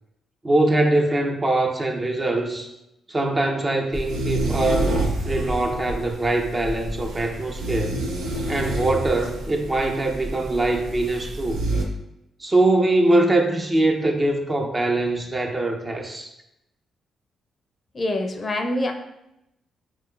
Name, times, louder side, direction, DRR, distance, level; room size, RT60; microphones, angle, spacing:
voice 1, 0.4-2.7 3.1-4.9 5.2-7.9 8.5-11.6 12.4-16.3, right 2 dB, 30° right, 3 dB, 0.7 m, -22 dB
sound 1, 3.9-11.8, right 1 dB, 85° right, 0.6 m, -28 dB
voice 2, 17.9-18.9, left 1 dB, 40° left, 4 dB, 0.5 m, -25 dB
6.1 x 2.4 x 2.3 m, 0.85 s
supercardioid pair, 60°, 0 cm